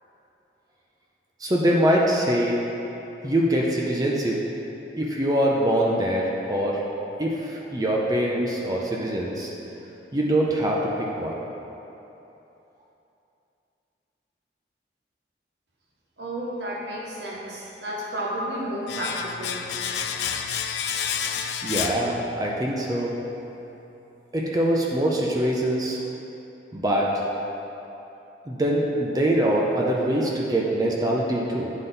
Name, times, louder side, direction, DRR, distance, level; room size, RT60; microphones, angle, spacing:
voice 1, 1.4-2.6 3.2-4.4 5.0-6.8 7.2-9.5 10.1-11.4 21.6-23.1 24.3-26.0 26.7-27.2 28.5-31.7, right 1 dB, 20° right, -3 dB, 0.5 m, -23 dB
voice 2, 16.2-19.7, equal, 80° right, -3 dB, 0.9 m, -32 dB
Domestic sounds home sounds, 18.9-22.7 22.9-23.1, left 7 dB, 75° left, 0.4 m, -30 dB
9.3 x 3.9 x 4.0 m, 3.0 s
head